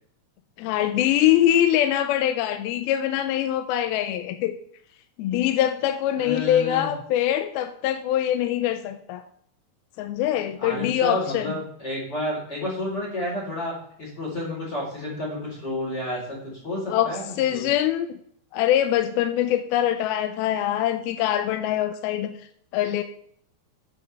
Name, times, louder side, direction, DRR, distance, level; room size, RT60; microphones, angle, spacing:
voice 1, 0.6-4.6 5.2-9.2 10.0-11.5 16.9-18.1 18.5-22.3 22.7-23.0, left 11 dB, 80° left, 8 dB, 2.3 m, -23 dB
voice 2, 6.2-6.9 10.6-17.7, left 1 dB, 25° left, -4 dB, 4.2 m, -31 dB
13.0 x 7.4 x 3.4 m, 0.65 s
omnidirectional pair, 4.7 m